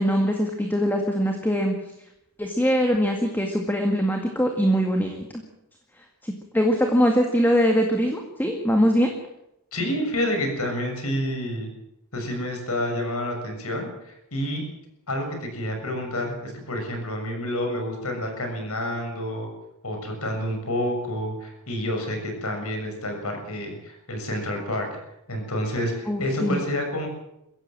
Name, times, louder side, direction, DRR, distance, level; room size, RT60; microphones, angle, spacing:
voice 1, 0.0-1.7 2.4-5.2 6.2-9.1 26.1-26.6, equal, 10° left, 3 dB, 2.0 m, -22 dB
voice 2, 9.7-11.7 12.1-14.6 15.1-19.5 19.8-24.9 25.3-27.1, left 1 dB, 75° left, 4 dB, 6.9 m, -29 dB
23.5 x 16.0 x 7.6 m, 0.83 s
head